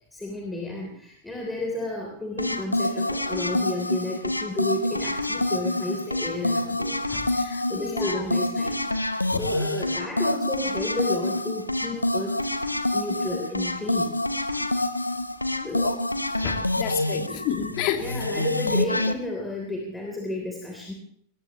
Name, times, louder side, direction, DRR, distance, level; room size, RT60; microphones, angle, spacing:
voice 1, 0.1-6.9 7.7-12.4 12.9-14.1 15.6-15.8 17.1-17.4 18.0-20.9, left 2 dB, 10° left, -1 dB, 3.5 m, -32 dB
sound 1, 2.4-19.1, left 1 dB, 85° left, 0.9 m, -27 dB
voice 2, 7.1-8.3 9.3-9.5 15.5-16.0 16.4-18.5, left 10 dB, 40° left, 5 dB, 2.3 m, -32 dB
22.5 x 20.0 x 3.1 m, 0.65 s
figure-of-eight pair, 90°, 0 cm